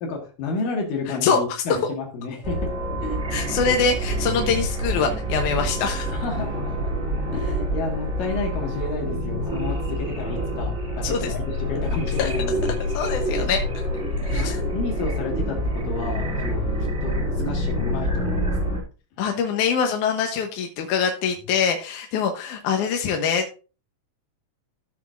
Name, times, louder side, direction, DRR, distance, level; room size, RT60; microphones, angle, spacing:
voice 1, 0.0-2.7 3.0-3.2 6.1-6.9 7.3-12.7 14.3-14.5 14.7-16.7 17.0-18.6, left 4 dB, 90° left, 1 dB, 3.4 m, -31 dB
voice 2, 1.2-1.6 3.3-6.1 11.0-11.3 12.2-12.3 12.9-13.6 14.3-14.6 19.2-23.6, left 6 dB, 75° left, 4 dB, 2.3 m, -24 dB
sound 1, 2.4-18.8, equal, 20° right, 2.6 m, -27 dB
15.0 x 6.1 x 2.5 m, 0.34 s
omnidirectional pair, 3.8 m